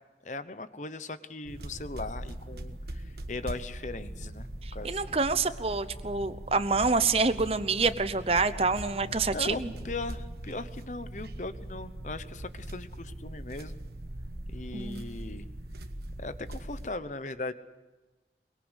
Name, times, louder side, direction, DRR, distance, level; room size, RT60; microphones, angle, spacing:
voice 1, 0.2-5.1 9.3-13.8 14.5-15.5 16.2-17.5, left 2 dB, 45° left, 12 dB, 0.9 m, -39 dB
sound 1, 1.5-16.9, right 1 dB, 65° right, 1.3 m, -41 dB
voice 2, 4.6-9.7 14.7-15.0, right 4 dB, 35° right, 12 dB, 0.9 m, -27 dB
23.0 x 21.5 x 8.2 m, 1.2 s
head